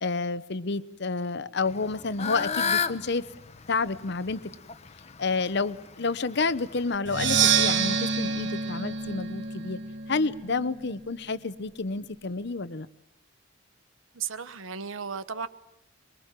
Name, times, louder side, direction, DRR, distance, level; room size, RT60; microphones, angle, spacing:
voice 1, 0.0-3.2 3.7-4.5 5.2-9.8 10.1-12.9, left 4 dB, 60° left, 15 dB, 0.9 m, -29 dB
Fowl / Bird, 1.7-7.0, left 6 dB, 35° left, 1.0 m, -33 dB
Percussion, 7.0-10.8, right 6 dB, 65° right, 1.7 m, -27 dB
voice 2, 14.1-15.5, right 6 dB, 85° right, 14 dB, 1.2 m, -34 dB
23.5 x 23.0 x 7.5 m, 0.88 s
head